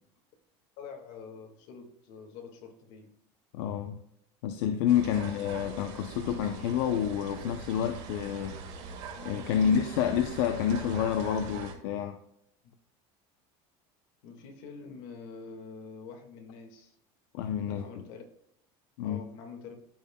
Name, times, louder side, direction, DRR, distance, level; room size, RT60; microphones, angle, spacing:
voice 1, 0.8-3.1 9.5-9.8 12.6-12.7 14.2-17.0 17.7-18.2 19.0-19.7, left 5 dB, 65° left, 3 dB, 1.9 m, -46 dB
voice 2, 3.5-4.0 4.4-8.6 9.2-12.2 17.3-18.0 19.0-19.2, left 9 dB, 85° left, 6 dB, 0.7 m, -29 dB
sound 1, 4.9-11.7, right 4 dB, 60° right, 1.8 m, -42 dB
13.5 x 5.6 x 2.3 m, 0.74 s
cardioid pair, 155°, 13 cm